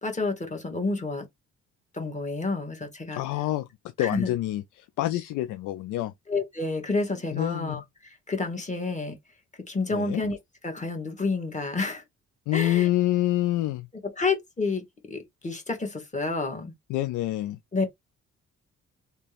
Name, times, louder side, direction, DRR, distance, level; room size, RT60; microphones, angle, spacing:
voice 1, 0.0-1.2 1.9-3.2 4.0-4.3 6.3-9.2 9.7-10.4 10.6-12.0 12.5-12.9 14.2-16.7 17.7-18.0, left 3 dB, 25° left, 1.7 m, -29 dB
voice 2, 3.1-3.7 4.0-6.1 7.3-7.8 9.9-10.2 12.5-13.9 16.9-17.6, left 14 dB, 90° left, 0.5 m, -27 dB
3.3 x 2.9 x 3.3 m
cardioid pair, 90°, 30 cm